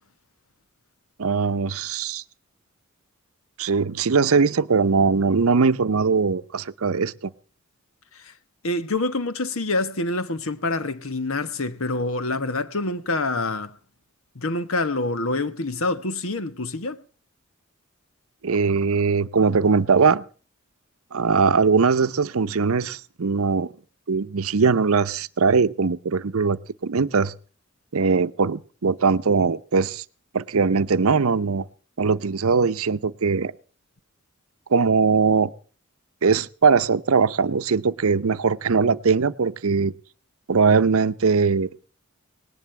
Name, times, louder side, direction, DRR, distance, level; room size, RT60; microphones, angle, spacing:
voice 1, 1.2-2.2 3.6-7.3 18.4-20.2 21.1-23.7 24.1-27.3 27.9-30.0 30.3-31.6 32.0-33.5 34.7-35.5 36.2-39.9 40.5-41.7, right 5 dB, 75° right, 0.7 m, -21 dB
voice 2, 8.6-13.7 14.3-17.0, left 2 dB, 70° left, 1.2 m, -26 dB
19.0 x 18.5 x 3.3 m
head